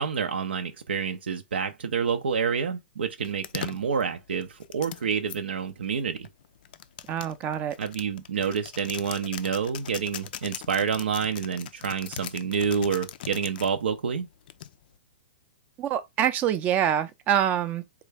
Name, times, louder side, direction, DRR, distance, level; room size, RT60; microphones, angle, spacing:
voice 1, 0.0-6.3 7.8-14.3, right 6 dB, 80° right, 0.5 m, -28 dB
sound 1, 3.2-5.4 6.2-13.7 14.5-15.0, left 11 dB, 60° left, 0.3 m, -40 dB
voice 2, 7.1-7.8 15.8-17.8, right 10 dB, 30° right, 0.4 m, -25 dB
3.8 x 2.3 x 3.3 m
hypercardioid pair, 125°, 6 cm